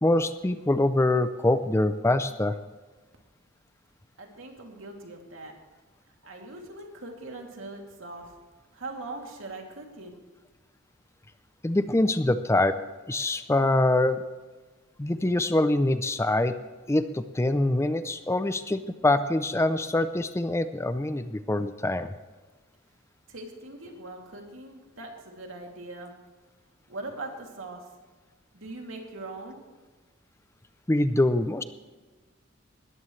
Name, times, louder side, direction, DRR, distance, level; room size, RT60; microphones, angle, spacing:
voice 1, 0.0-2.6 11.6-12.8 13.1-14.2 15.0-16.5 16.9-22.1 30.9-31.6, left 2 dB, 15° left, 11 dB, 0.5 m, -24 dB
voice 2, 4.2-5.5 6.2-8.3 8.7-10.1 23.3-26.1 26.9-27.8 28.5-29.6, right 2 dB, 80° right, 1 dB, 2.7 m, -41 dB
19.5 x 14.5 x 3.2 m, 1.3 s
head